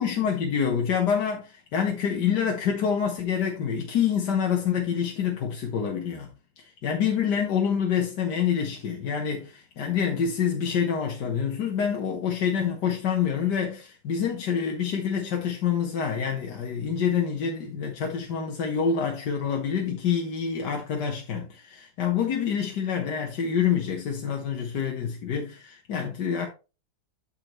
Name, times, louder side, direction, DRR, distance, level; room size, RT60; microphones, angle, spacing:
voice 1, 0.0-6.3 6.6-26.5, left 7 dB, 60° left, 1.6 m, -27 dB
13.0 x 4.5 x 3.0 m
omnidirectional pair, 2.2 m